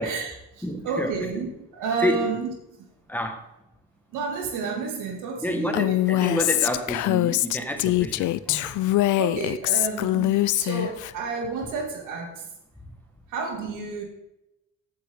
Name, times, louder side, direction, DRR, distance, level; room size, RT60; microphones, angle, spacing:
voice 1, 0.0-1.5 1.7-2.5 4.1-6.0 9.2-12.5 13.3-14.0, right 4 dB, 90° right, 2 dB, 2.7 m, -30 dB
voice 2, 0.6-1.2 2.0-2.3 3.1-3.4 5.4-8.8, equal, 5° left, 4 dB, 1.8 m, -29 dB
Female speech woman speaking, 5.7-11.1, left 16 dB, 75° left, 0.5 m, -23 dB
15.5 x 8.3 x 3.9 m, 0.89 s
cardioid pair, 90°, 30 cm